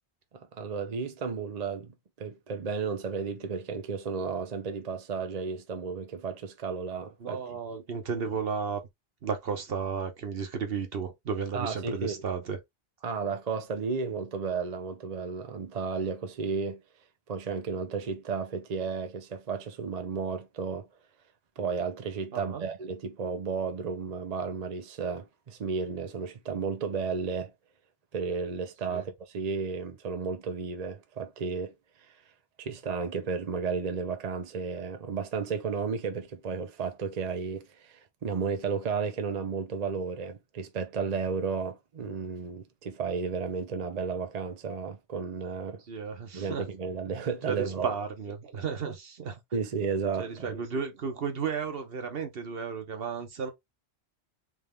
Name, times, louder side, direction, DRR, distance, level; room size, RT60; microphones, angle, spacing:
voice 1, 0.3-7.4 11.5-12.1 13.0-16.8 17.3-20.9 21.6-27.5 28.1-31.7 32.0-32.1 32.6-45.8 46.3-47.9 49.5-50.6, right 5 dB, 45° right, 0.6 m, -33 dB
voice 2, 7.2-8.8 9.2-12.6 22.3-22.6 28.9-29.0 45.9-46.6 47.4-49.4 50.2-53.5, right 6 dB, 60° right, 1.1 m, -33 dB
3.6 x 3.3 x 3.3 m
omnidirectional pair, 1.2 m